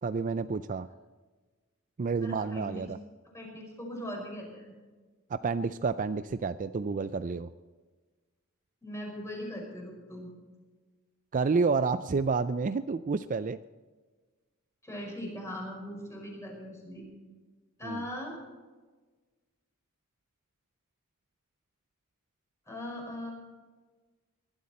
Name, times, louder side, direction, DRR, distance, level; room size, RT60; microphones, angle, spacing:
voice 1, 0.0-0.9 2.0-3.0 5.3-7.5 11.3-13.6 17.8-18.0, right 4 dB, 35° right, 13 dB, 0.4 m, -29 dB
voice 2, 2.2-2.9 3.3-4.7 8.8-10.3 14.8-17.1 17.8-18.4 22.7-23.3, left 1 dB, 15° left, -1 dB, 5.3 m, -40 dB
20.5 x 12.5 x 4.3 m, 1.3 s
head